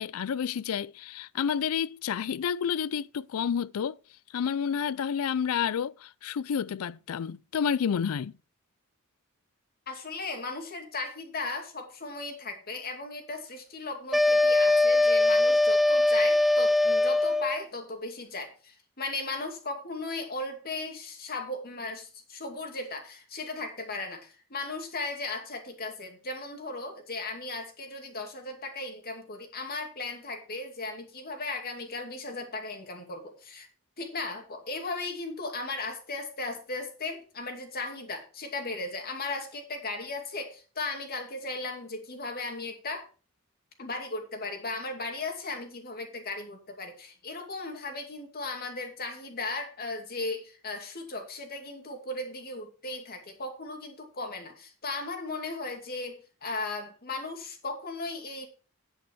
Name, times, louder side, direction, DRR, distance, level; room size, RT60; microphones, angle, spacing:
voice 1, 0.0-4.0 4.3-8.3, left 7 dB, 80° left, 0.4 m, -30 dB
voice 2, 9.9-33.7 34.0-43.1 43.8-58.5, left 3 dB, 45° left, 2.5 m, -36 dB
sound 1, 14.1-17.6, left 2 dB, ahead, 0.6 m, -22 dB
9.5 x 8.8 x 4.6 m
head